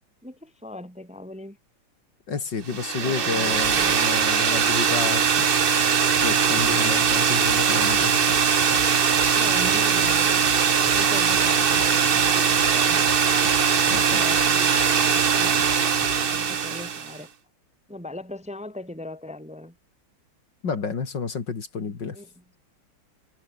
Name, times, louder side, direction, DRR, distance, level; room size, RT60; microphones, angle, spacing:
voice 1, 0.2-1.6 2.9-3.7 9.3-10.5 10.8-13.1 13.9-14.7 15.4-15.7 16.3-17.3 17.9-19.7 22.1-22.4, left 1 dB, 5° right, 2.0 m, -39 dB
voice 2, 2.3-5.5 6.1-8.3 13.9-14.2 20.6-22.2, left 5 dB, 55° left, 3.1 m, -30 dB
sound 1, 2.7-17.2, right 6 dB, 45° right, 0.7 m, -21 dB
sound 2, 6.1-16.4, right 4 dB, 65° right, 4.9 m, -41 dB
omnidirectional pair, 2.3 m